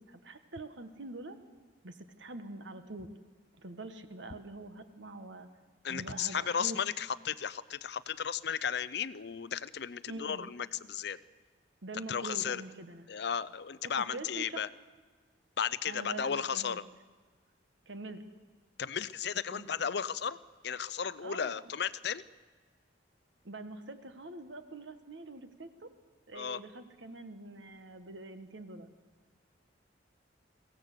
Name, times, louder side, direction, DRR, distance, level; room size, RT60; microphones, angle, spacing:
voice 1, 0.1-1.4 1.8-3.1 3.6-5.5 5.9-6.8 10.1-10.5 11.8-13.1 14.1-14.6 15.9-16.8 17.9-18.2 19.5-19.7 21.2-21.5 23.4-25.9 26.3-28.9, right 2 dB, 75° right, 8 dB, 1.5 m, -44 dB
voice 2, 5.8-11.2 12.1-12.6 13.1-14.7 15.6-16.8 18.8-20.4 20.6-22.2 26.3-26.6, left 7 dB, 60° left, 17 dB, 0.5 m, -34 dB
23.0 x 16.5 x 6.8 m, 1.5 s
head